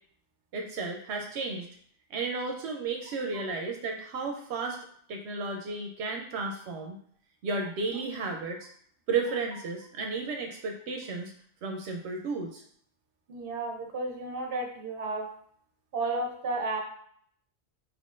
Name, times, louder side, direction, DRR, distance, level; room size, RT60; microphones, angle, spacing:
voice 1, 0.5-1.7 2.1-4.8 5.1-7.0 7.4-8.7 9.1-11.3 11.6-12.6, right 4 dB, 85° right, 2 dB, 0.9 m, -33 dB
voice 2, 13.3-15.3 15.9-16.8, right 2 dB, 60° right, 2 dB, 0.9 m, -32 dB
4.7 x 3.6 x 2.5 m, 0.63 s
omnidirectional pair, 1.1 m